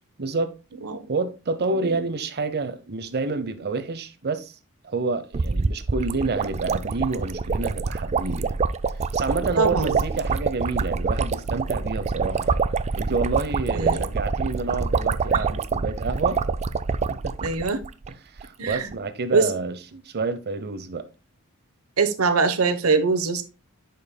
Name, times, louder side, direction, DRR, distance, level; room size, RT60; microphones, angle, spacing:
voice 1, 0.2-0.6 1.1-4.6 4.8-8.6 9.1-12.6 13.0-16.4 17.2-17.7 18.1-21.1, right 3 dB, 50° right, 0.8 m, -28 dB
sound 1, 5.3-18.1 18.4-18.5 18.7-18.9, right 4 dB, 30° right, 0.4 m, -26 dB
voice 2, 9.6-10.0 13.7-14.0 15.3-15.4 17.4-17.8 18.6-18.9 19.3-19.5 22.0-23.4, right 4 dB, 80° right, 1.0 m, -22 dB
11.0 x 5.4 x 2.2 m
head